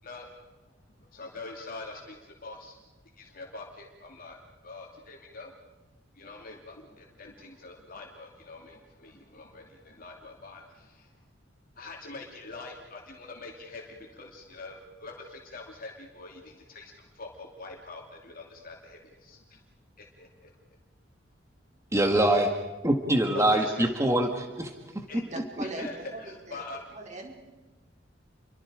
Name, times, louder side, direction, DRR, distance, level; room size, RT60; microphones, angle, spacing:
voice 1, 0.0-0.5 1.0-2.8 3.2-5.5 6.1-11.1 11.8-19.6 20.0-20.6 22.3-22.4 23.3-23.8 25.1-25.2 25.6-26.8, left 3 dB, 50° left, 1 dB, 2.8 m, -44 dB
voice 2, 21.9-22.5 22.8-24.7, right 1 dB, 15° right, 3 dB, 1.9 m, -24 dB
voice 3, 25.3-26.6 26.9-27.4, right 2 dB, 40° right, 1 dB, 4.9 m, -40 dB
30.0 x 24.0 x 5.1 m, 1.1 s
head